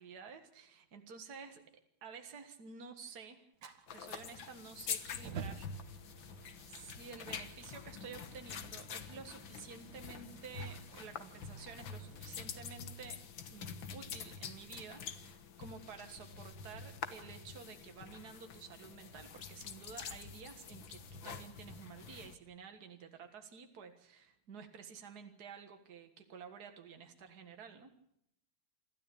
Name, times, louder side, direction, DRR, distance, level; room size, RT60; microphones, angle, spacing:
voice 1, 0.0-3.4 3.9-6.0 6.7-27.9, right 6 dB, 55° right, 6 dB, 2.2 m, -51 dB
Fire, 3.6-12.6, right 6 dB, 80° right, 2.4 m, -52 dB
sound 1, 3.9-22.4, left 6 dB, 80° left, 2.1 m, -47 dB
27.5 x 13.0 x 8.6 m, 0.74 s
omnidirectional pair, 2.1 m